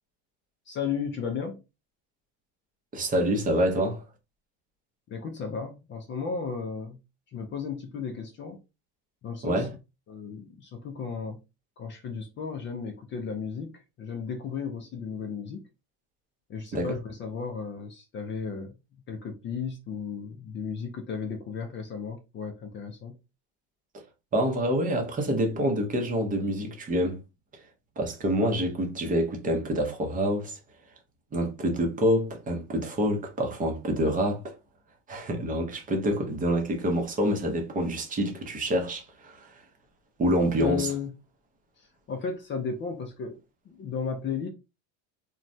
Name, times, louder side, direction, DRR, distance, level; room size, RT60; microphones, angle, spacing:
voice 1, 0.7-1.6 5.1-7.0 7.3-8.6 9.2-9.7 10.1-11.4 11.8-15.7 16.5-18.7 19.1-23.1 40.6-41.1 41.8-43.4 43.7-44.5, left 6 dB, 30° left, 0.4 m, -34 dB
voice 2, 2.9-4.0 9.4-9.7 16.7-16.9 24.3-27.2 28.0-30.6 31.3-34.5 35.1-39.5 40.2-40.9, equal, 20° right, 0.6 m, -27 dB
3.1 x 2.2 x 2.6 m
cardioid pair, 145°, 41 cm